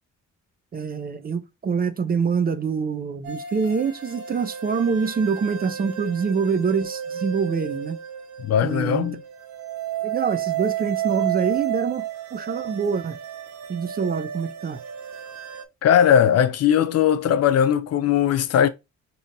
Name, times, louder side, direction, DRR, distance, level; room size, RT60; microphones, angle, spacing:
voice 1, 0.7-8.0 8.6-9.1 10.0-13.2 13.7-14.8, right 5 dB, 30° right, 0.4 m, -25 dB
sound 1, 3.2-15.6, right 11 dB, 70° right, 0.7 m, -32 dB
voice 2, 8.4-9.2 15.8-18.7, left 9 dB, 55° left, 0.5 m, -19 dB
5.0 x 2.8 x 2.6 m
cardioid pair, 90°, 30 cm